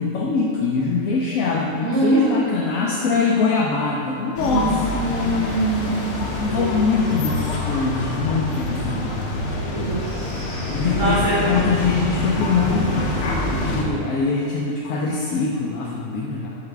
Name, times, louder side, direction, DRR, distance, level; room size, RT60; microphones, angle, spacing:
voice 1, 0.0-4.7 6.4-9.1 10.7-16.6, left 4 dB, 90° left, -4 dB, 1.1 m, -23 dB
voice 2, 1.8-2.3 4.4-7.0 9.5-11.4, right 2 dB, 80° right, -10 dB, 1.6 m, -25 dB
sound 1, 4.4-13.8, left 2 dB, 65° left, 1.0 m, -26 dB
5.8 x 5.6 x 3.3 m, 2.6 s
omnidirectional pair, 1.4 m